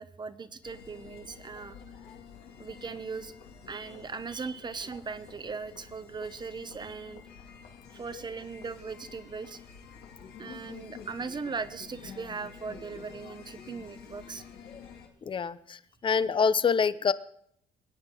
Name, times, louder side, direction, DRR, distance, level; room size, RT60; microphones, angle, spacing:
voice 1, 0.0-1.8 2.6-3.3 3.7-7.2 7.9-9.6 10.4-14.5, right 5 dB, 25° right, 12 dB, 0.8 m, -39 dB
sound 1, 0.6-15.1, left 6 dB, 75° left, 2.4 m, -49 dB
voice 2, 15.2-17.1, left 6 dB, 30° left, 16 dB, 0.6 m, -26 dB
21.0 x 9.4 x 3.8 m, 0.71 s
cardioid pair, 110°, 17 cm